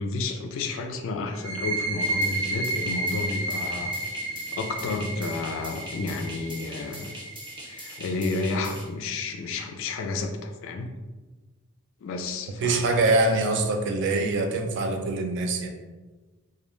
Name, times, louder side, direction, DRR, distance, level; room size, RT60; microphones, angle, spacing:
voice 1, 0.0-3.9 4.5-7.2 7.7-10.9 12.0-13.1, left 3 dB, 60° left, 5 dB, 0.3 m, -31 dB
sound 1, 1.3-8.7, right 2 dB, 90° right, 0.7 m, -32 dB
sound 2, 2.0-8.9, right 1 dB, 25° right, 0.7 m, -43 dB
voice 2, 12.6-15.7, right 2 dB, 55° right, 5 dB, 0.3 m, -24 dB
2.2 x 2.1 x 3.0 m, 1.2 s
head